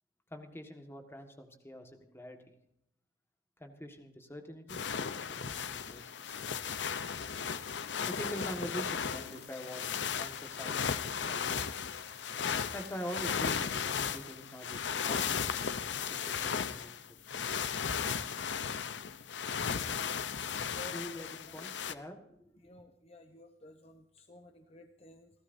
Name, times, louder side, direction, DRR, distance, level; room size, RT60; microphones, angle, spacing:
voice 1, 0.3-2.4 3.6-4.8 5.1-6.4 8.1-11.4 12.7-13.6 13.9-15.3 16.1-17.0 20.8-22.2, equal, 15° left, 4 dB, 1.6 m, -44 dB
sound 1, 4.7-21.9, left 7 dB, 80° left, 0.7 m, -36 dB
sound 2, 6.1-13.0, left 6 dB, 60° left, 3.6 m, -56 dB
voice 2, 20.7-21.9 22.6-25.3, left 1 dB, 35° left, 6 dB, 1.0 m, -54 dB
28.5 x 12.5 x 2.7 m, 0.78 s
head